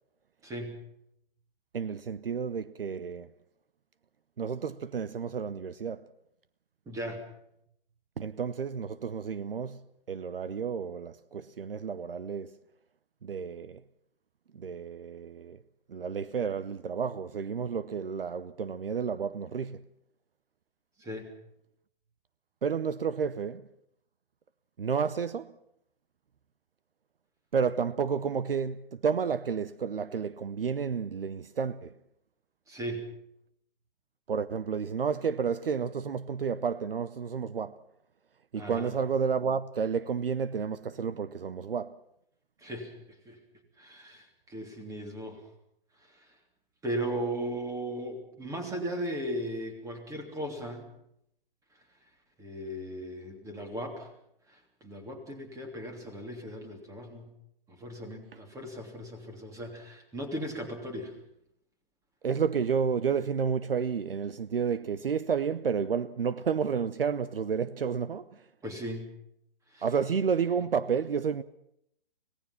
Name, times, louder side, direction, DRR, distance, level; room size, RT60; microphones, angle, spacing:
voice 1, 0.4-0.8 6.8-7.2 21.0-21.3 32.7-33.1 38.6-38.9 42.6-43.4 43.8-45.4 46.0-46.3 46.8-50.9 52.4-54.1 54.5-57.3 57.7-61.1 68.6-69.1 69.7-69.9, right 1 dB, 10° right, 3.1 m, -37 dB
voice 2, 1.7-3.3 4.4-6.0 8.2-9.8 10.1-12.5 13.2-13.8 14.5-15.6 15.9-19.8 22.6-23.7 24.8-25.5 27.5-31.9 34.3-37.8 38.5-42.0 62.2-68.4 69.8-71.4, right 6 dB, 75° right, 0.8 m, -31 dB
25.5 x 18.5 x 5.8 m
figure-of-eight pair, 130°, 29 cm